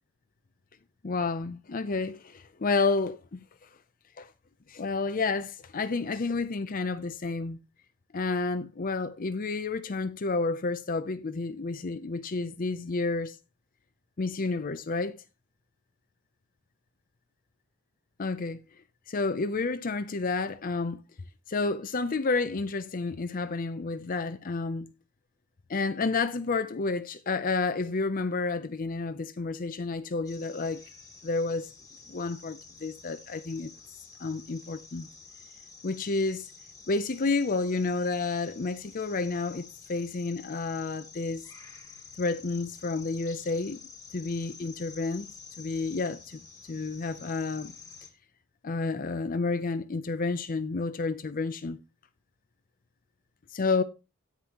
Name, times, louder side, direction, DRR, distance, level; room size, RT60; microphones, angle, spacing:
voice 1, 1.0-3.7 4.2-4.3 4.7-7.6 8.1-13.4 14.2-15.2 18.2-18.6 19.1-21.0 21.5-24.9 25.7-30.8 31.2-31.7 32.1-33.7 34.2-35.1 35.8-36.5 36.9-41.5 42.2-43.8 44.1-45.3 45.6-47.8 48.6-51.8 53.5-53.8, left 3 dB, 40° left, 0.5 m, -30 dB
sound 1, 30.3-48.1, left 4 dB, 15° left, 2.9 m, -50 dB
13.5 x 9.6 x 2.9 m
head